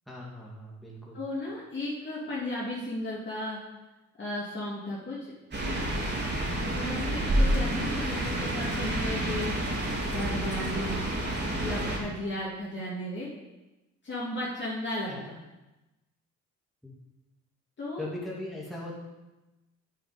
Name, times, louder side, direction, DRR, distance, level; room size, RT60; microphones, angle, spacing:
voice 1, 0.1-1.2 15.1-15.2 18.0-18.9, left 1 dB, ahead, -5 dB, 2.7 m, -39 dB
voice 2, 1.1-3.6 4.2-5.3 5.6-5.9 6.6-9.5 10.1-11.0 11.6-13.3 14.0-15.4 17.8-18.0, left 1 dB, 35° left, -7 dB, 3.0 m, -34 dB
sound 1, 5.5-12.0, right 1 dB, 35° right, 3.6 m, -29 dB
9.1 x 7.8 x 5.4 m, 1.0 s
cardioid pair, 90°, 30 cm